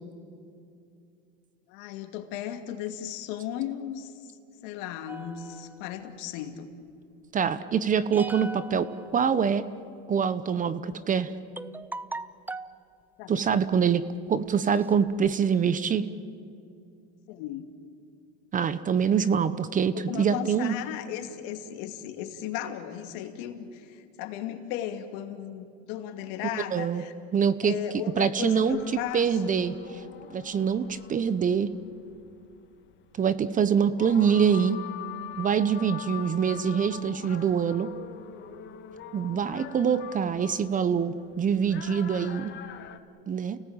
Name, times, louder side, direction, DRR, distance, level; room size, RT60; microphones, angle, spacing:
voice 1, 1.7-4.3 4.6-6.7 13.2-13.5 17.3-17.7 19.9-27.1 27.6-29.6, left 10 dB, 70° left, 6 dB, 2.5 m, -36 dB
sound 1, 5.1-6.4 8.1-9.9 10.9-11.0 11.6-12.8 13.5-13.8 14.3-14.4 14.6-15.3, right 2 dB, 5° right, 0.6 m, -41 dB
voice 2, 7.3-9.6 10.1-11.3 13.3-14.0 14.3-16.1 18.5-20.7 26.7-27.0 27.3-27.8 28.2-28.8 29.1-29.7 30.3-31.7 33.2-34.8 35.4-37.9 39.1-42.5 43.3-43.6, right 7 dB, 25° right, 15 dB, 0.9 m, -25 dB
sound 2, 28.4-43.0, left 10 dB, 40° left, 1.6 m, -44 dB
29.5 x 18.5 x 8.9 m, 2.5 s
supercardioid pair, 125°, 31 cm